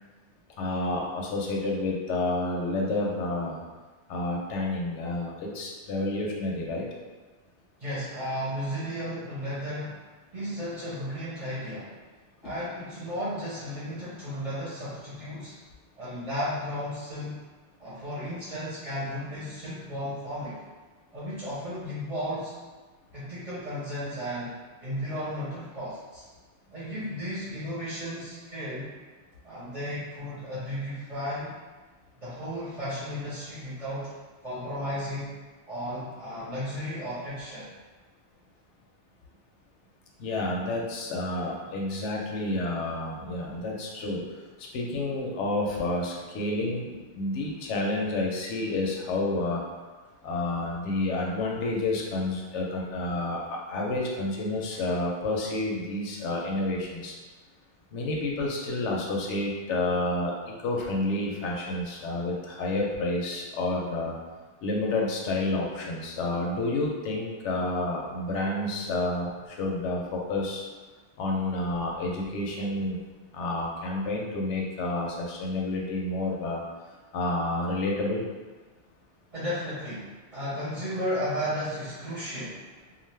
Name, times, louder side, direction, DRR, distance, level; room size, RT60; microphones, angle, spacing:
voice 1, 0.6-3.6 4.1-6.9 40.2-44.2 44.7-49.6 50.2-57.1 57.9-64.2 64.6-70.6 71.2-73.0 73.3-76.6 77.1-78.2, left 2 dB, 85° left, -1 dB, 0.9 m, -29 dB
voice 2, 7.8-10.0 10.3-12.0 12.4-15.5 16.0-17.4 17.8-20.6 21.1-22.5 23.1-24.5 24.8-26.2 26.7-28.9 29.4-31.5 32.2-34.1 34.4-35.4 35.7-37.7 79.3-82.6, equal, 35° right, -10 dB, 0.8 m, -34 dB
2.4 x 2.4 x 3.2 m, 1.3 s
omnidirectional pair, 1.2 m